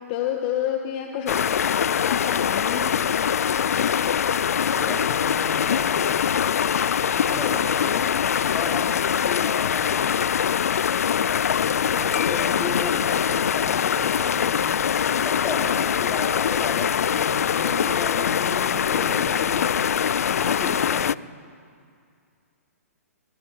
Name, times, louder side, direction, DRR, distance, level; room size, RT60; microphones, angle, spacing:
voice 1, 0.1-1.6 2.0-2.9, left 10 dB, 40° left, 3 dB, 1.7 m, -28 dB
sound 1, 1.3-21.2, left 8 dB, 70° left, 0.5 m, -23 dB
voice 2, 4.7-6.4 7.2-10.1 11.6-19.8 20.4-21.1, left 3 dB, 15° left, -1 dB, 3.9 m, -35 dB
27.5 x 22.0 x 5.0 m, 2.3 s
hypercardioid pair, 130°, 8 cm